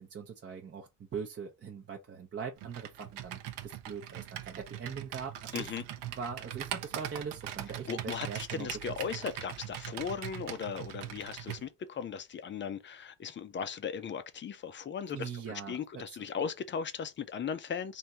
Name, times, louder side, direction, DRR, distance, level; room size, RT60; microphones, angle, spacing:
voice 1, 0.0-5.8 6.1-9.0 15.1-16.3, right 6 dB, 30° right, 0.7 m, -42 dB
Computer keyboard, 2.6-11.6, right 11 dB, 85° right, 0.9 m, -41 dB
voice 2, 5.5-5.8 7.9-15.3 15.7-18.0, left 6 dB, 30° left, 0.5 m, -37 dB
3.5 x 2.7 x 4.2 m
cardioid pair, 140°, 40 cm